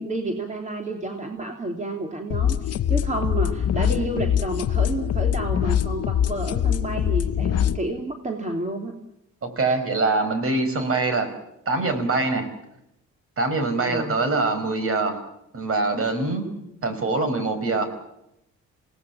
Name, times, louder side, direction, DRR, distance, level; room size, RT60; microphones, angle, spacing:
voice 1, 0.0-8.9 13.8-14.2 16.4-16.7, right 2 dB, 25° right, 3 dB, 3.0 m, -30 dB
sound 1, 2.3-7.8, left 9 dB, 55° left, 0.8 m, -23 dB
voice 2, 9.4-11.3 11.6-12.5 13.4-15.2 15.5-16.5 16.8-17.9, right 3 dB, 45° right, 8 dB, 5.1 m, -24 dB
27.5 x 18.5 x 7.1 m, 0.83 s
cardioid pair, 90°, 30 cm